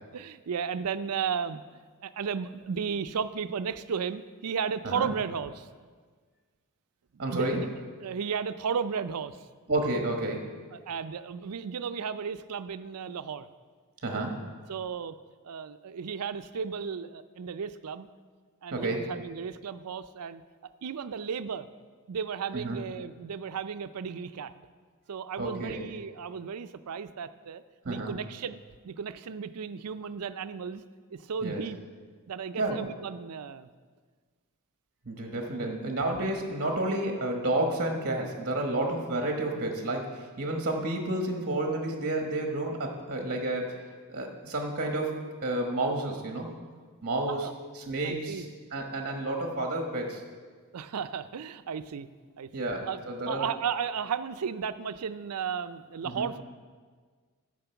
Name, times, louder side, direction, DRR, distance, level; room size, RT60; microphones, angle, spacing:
voice 1, 0.1-1.6 2.0-5.7 7.3-7.7 8.0-9.4 10.7-13.5 14.7-15.1 15.4-18.1 18.6-20.4 20.8-21.7 22.1-24.5 25.1-28.6 28.8-30.8 31.1-31.8 32.3-33.7 35.6-35.8 47.3-47.5 48.0-48.5 50.7-52.1 52.4-53.0 53.3-56.4, right 6 dB, 85° right, 12 dB, 0.5 m, -34 dB
voice 2, 7.2-7.6 9.7-10.5 14.0-14.4 18.7-19.1 22.5-22.8 25.4-25.8 27.8-28.2 31.4-31.6 32.5-32.8 35.0-43.8 44.1-46.5 47.0-47.5 47.7-48.5 48.7-50.2 52.5-53.5 56.0-56.3, right 2 dB, 45° right, 2 dB, 1.2 m, -30 dB
12.5 x 5.2 x 7.0 m, 1.5 s
head